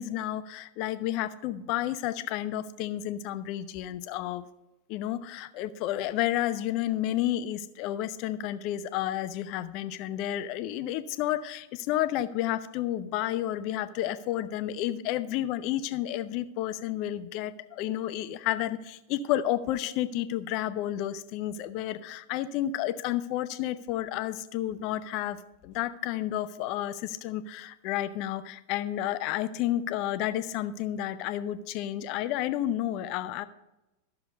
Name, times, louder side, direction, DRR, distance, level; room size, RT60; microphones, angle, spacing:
voice 1, 0.0-4.5 4.9-33.4, left 12 dB, 45° left, 13 dB, 0.6 m, -31 dB
13.0 x 6.8 x 4.0 m, 0.99 s
figure-of-eight pair, 90°, 0 cm